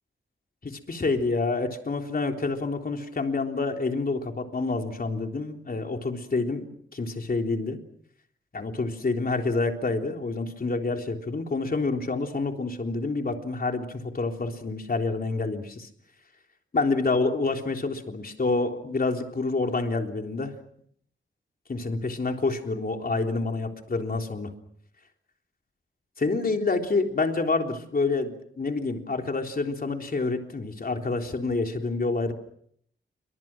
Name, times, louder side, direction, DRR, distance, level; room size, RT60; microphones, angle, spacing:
voice 1, 0.6-7.8 8.5-15.9 16.7-20.5 21.7-24.5 26.2-32.3, left 3 dB, 45° left, 4 dB, 3.6 m, -28 dB
29.0 x 25.0 x 6.1 m, 0.68 s
wide cardioid pair, 95°, 21 cm